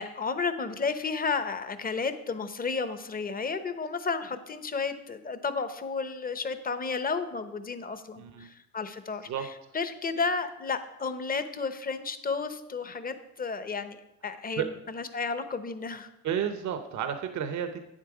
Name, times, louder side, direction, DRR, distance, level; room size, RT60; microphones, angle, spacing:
voice 1, 0.0-9.5 9.7-16.1, left 4 dB, 30° left, 10 dB, 0.8 m, -32 dB
voice 2, 8.2-8.5 9.3-9.5 14.6-14.7 16.2-17.8, right 8 dB, 70° right, 7 dB, 0.8 m, -31 dB
9.0 x 7.5 x 4.9 m, 0.92 s
cardioid pair, 90°, 30 cm